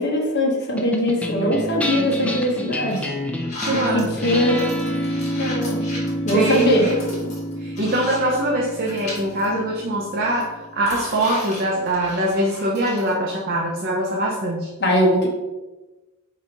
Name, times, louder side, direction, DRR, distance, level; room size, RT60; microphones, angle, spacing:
voice 1, 0.0-3.0 3.7-5.0 5.4-5.8 6.2-6.8 14.8-15.3, equal, 50° left, -1 dB, 1.0 m, -21 dB
sound 1, 0.8-11.4, equal, 5° left, 0.4 m, -29 dB
sound 2, 1.4-1.7 2.2-2.3 2.9-8.5 8.7-9.5 9.8-9.9 10.3-13.1, left 1 dB, 35° left, 1.4 m, -36 dB
voice 2, 3.6-4.3 6.3-7.3 7.6-14.7, right 1 dB, 45° right, -2 dB, 0.6 m, -23 dB
3.9 x 2.8 x 4.5 m, 1.1 s
head